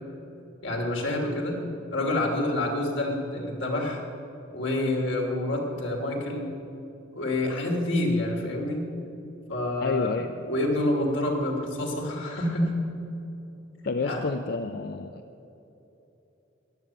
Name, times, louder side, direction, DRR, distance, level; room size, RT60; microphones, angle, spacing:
voice 1, 0.6-1.6 1.9-4.0 4.5-6.5 7.1-8.9 9.5-10.2 10.4-12.9 14.0-14.2, left 1 dB, 75° left, 1 dB, 2.9 m, -27 dB
voice 2, 9.8-10.3 13.9-15.2, left 4 dB, 50° left, 9 dB, 0.5 m, -29 dB
14.0 x 10.5 x 8.9 m, 3.0 s
head